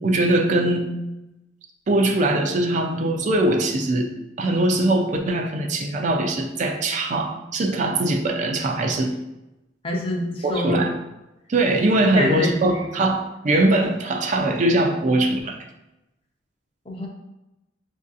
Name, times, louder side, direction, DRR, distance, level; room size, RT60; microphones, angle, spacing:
voice 1, 0.0-0.9 1.9-4.1 4.4-9.1 10.4-10.9 11.5-15.6, right 2 dB, 40° right, 2 dB, 0.4 m, -21 dB
voice 2, 9.8-10.8 12.1-13.1 16.9-17.1, left 1 dB, 30° left, 0 dB, 0.6 m, -26 dB
6.1 x 2.6 x 2.5 m, 0.95 s
head